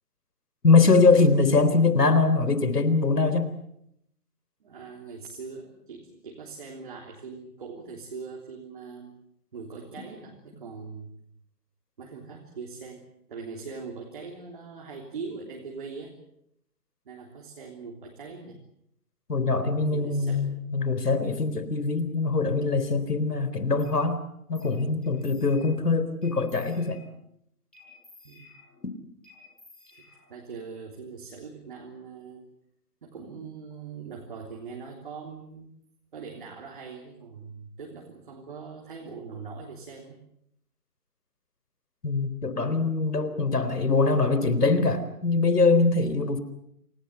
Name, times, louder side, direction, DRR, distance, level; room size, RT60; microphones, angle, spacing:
voice 1, 0.6-3.5 19.3-24.2 24.5-27.0 42.0-46.4, left 3 dB, 85° left, 12 dB, 4.1 m, -23 dB
voice 2, 4.6-9.1 9.5-11.1 12.0-16.2 17.0-18.6 19.6-20.6 28.2-28.5 29.9-32.5 33.0-35.7 36.1-40.2, right 5 dB, 35° right, 0 dB, 3.5 m, -41 dB
sound 1, 23.8-24.0 24.6-24.8 25.0-25.8 26.2-27.2 27.7-28.9 29.2-30.5, left 3 dB, 5° left, 5.0 m, -54 dB
27.5 x 17.5 x 8.2 m, 0.75 s
hypercardioid pair, 170°, 46 cm